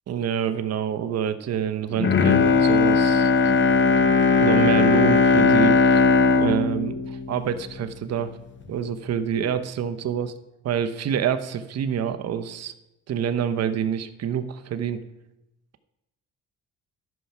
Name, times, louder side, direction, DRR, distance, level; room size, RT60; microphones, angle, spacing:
voice 1, 0.1-3.3 4.4-6.0 6.4-8.3 8.7-10.3 10.6-12.7 13.1-15.0, right 8 dB, 55° right, 10 dB, 0.8 m, -27 dB
Bowed string instrument, 1.9-8.2 8.6-8.7, left 4 dB, 40° left, 0.9 m, -19 dB
12.5 x 5.6 x 5.9 m, 0.91 s
cardioid pair, 90°, 30 cm